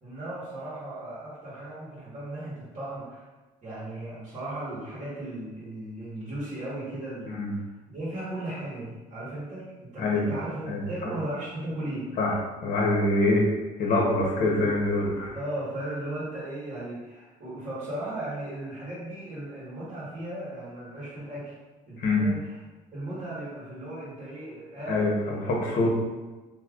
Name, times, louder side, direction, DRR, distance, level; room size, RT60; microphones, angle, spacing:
voice 1, 0.0-3.3 3.6-7.4 7.9-12.2 14.4-14.7 15.3-21.5 21.9-22.6 22.9-25.1 25.8-25.9, right 1 dB, 40° right, -9 dB, 1.5 m, -36 dB
voice 2, 10.0-10.3 10.7-10.8 12.2-12.4 12.6-13.5 13.8-15.4 22.0-22.3 24.9-25.9, left 2 dB, 60° left, -2 dB, 1.0 m, -24 dB
3.4 x 2.7 x 2.5 m, 1.2 s
supercardioid pair, 90°, 16 cm